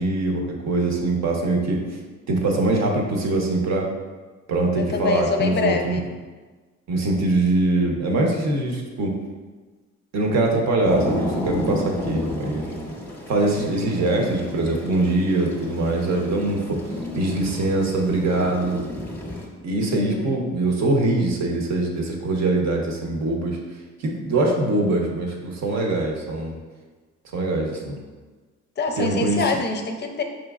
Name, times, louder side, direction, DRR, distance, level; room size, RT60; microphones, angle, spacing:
voice 1, 0.0-1.8 2.3-3.9 4.5-6.0 6.9-9.1 10.1-12.7 13.3-16.8 17.1-18.8 19.6-23.6 24.0-26.5 27.3-28.0 29.0-29.4, right 2 dB, 60° right, 0 dB, 0.8 m, -23 dB
voice 2, 4.8-6.0 19.9-20.4 28.8-30.2, left 4 dB, 35° left, 5 dB, 0.5 m, -25 dB
sound 1, 10.8-19.5, left 1 dB, 5° left, 0.8 m, -31 dB
5.1 x 3.0 x 2.4 m, 1.3 s
cardioid pair, 90°, 30 cm